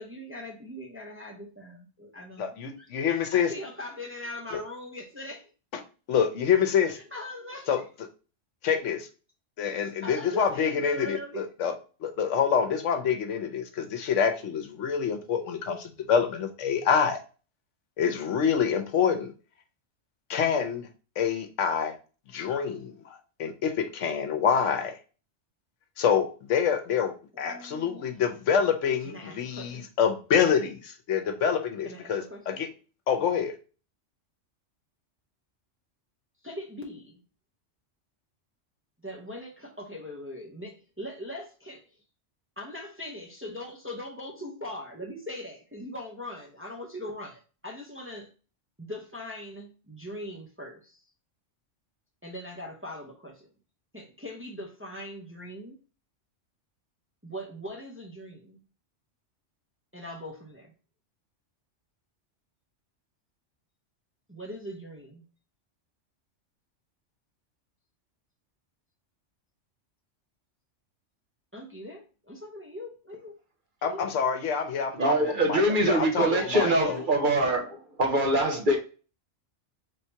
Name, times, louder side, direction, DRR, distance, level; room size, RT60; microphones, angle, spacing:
voice 1, 0.0-2.5 3.3-5.5 6.9-7.8 9.8-11.5 27.4-28.1 29.0-29.9 31.8-32.7 36.4-37.2 39.0-41.8 42.6-48.3 48.8-51.0 52.2-53.5 53.9-55.8 57.2-58.6 59.9-60.7 64.3-65.2 71.5-73.4 73.8-74.1 76.2-77.1, left 1 dB, 15° right, 0.6 m, -41 dB
voice 2, 2.4-3.5 4.5-4.6 6.1-7.0 7.7-7.8 8.6-9.1 9.6-11.7 12.0-17.2 18.0-19.3 20.3-20.9 21.2-22.0 22.3-25.0 26.0-32.7 33.1-33.5 73.8-77.0, left 7 dB, 80° left, 1.1 m, -26 dB
voice 3, 75.0-78.8, right 1 dB, 45° right, 1.1 m, -24 dB
3.5 x 2.8 x 4.3 m
omnidirectional pair, 1.2 m